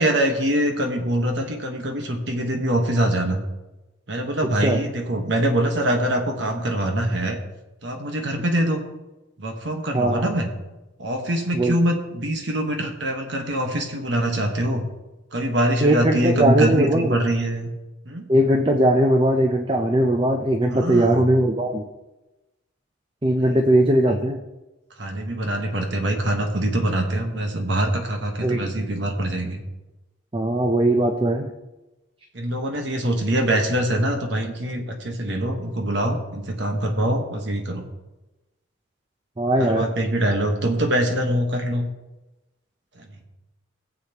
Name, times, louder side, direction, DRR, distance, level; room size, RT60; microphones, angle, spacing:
voice 1, 0.0-3.4 4.1-7.4 7.8-8.8 9.4-10.5 11.0-14.9 15.3-17.7 18.0-18.3 20.7-21.2 23.4-23.6 25.0-29.6 32.3-37.9 39.6-41.9 42.9-43.1, right 1 dB, 60° right, 3 dB, 1.3 m, -24 dB
voice 2, 9.9-10.3 11.5-11.7 15.8-17.2 18.3-21.9 23.2-24.4 28.4-28.6 30.3-31.5 39.4-39.9, right 1 dB, 25° right, 4 dB, 0.6 m, -19 dB
18.0 x 7.6 x 3.0 m, 1.0 s
head